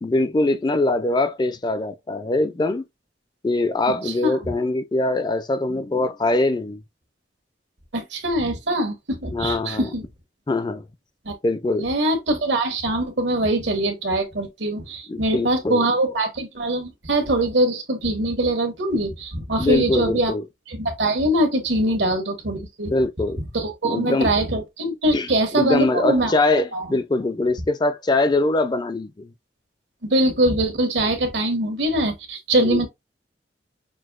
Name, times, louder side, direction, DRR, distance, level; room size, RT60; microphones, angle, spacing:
voice 1, 0.0-2.8 3.4-6.8 9.3-9.9 10.5-10.8 11.4-11.9 15.1-16.1 19.6-20.4 22.9-23.4 23.8-24.3 25.1-29.3 32.6-32.8, left 2 dB, 25° left, 0.3 m, -23 dB
voice 2, 7.9-10.0 11.2-11.3 11.8-20.3 20.7-22.9 23.5-26.3 26.7-26.9 30.0-32.9, right 1 dB, 80° right, 1.3 m, -23 dB
6.1 x 2.6 x 2.3 m
head